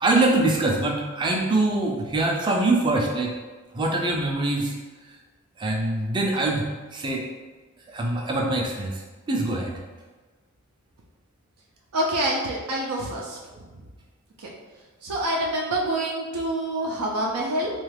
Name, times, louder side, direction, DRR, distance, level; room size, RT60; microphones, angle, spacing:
voice 1, 0.0-3.3 3.7-4.8 5.6-7.3 7.9-9.0 9.3-9.8, right 2 dB, 20° right, 0 dB, 0.3 m, -24 dB
voice 2, 11.9-13.4 14.4-14.5 15.0-17.7, right 1 dB, 90° right, -2 dB, 0.5 m, -26 dB
3.1 x 2.3 x 3.3 m, 1.3 s
head